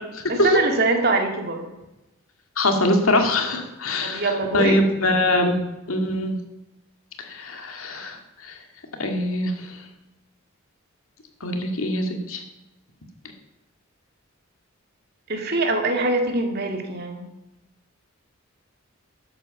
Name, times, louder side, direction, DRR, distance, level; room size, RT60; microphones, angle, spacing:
voice 1, 0.3-1.8 4.0-4.8 15.3-17.2, right 2 dB, 50° right, 4 dB, 2.2 m, -23 dB
voice 2, 2.6-4.2 4.5-5.6 5.9-6.4 7.3-8.2 9.0-9.5 11.4-12.4, left 1 dB, 80° left, 4 dB, 2.3 m, -22 dB
12.5 x 8.8 x 7.0 m, 0.96 s
head